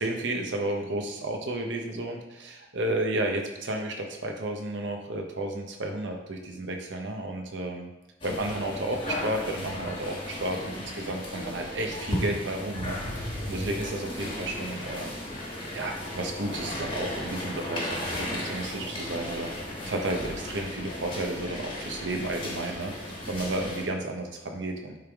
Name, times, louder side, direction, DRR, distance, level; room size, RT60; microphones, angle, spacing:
voice 1, 0.0-7.9 8.2-15.1 15.7-19.5 19.8-22.9 23.3-25.0, right 1 dB, 75° right, 3 dB, 0.8 m, -32 dB
sound 1, 8.2-23.8, left 1 dB, 25° left, 1.3 m, -35 dB
8.6 x 3.4 x 3.5 m, 0.98 s
head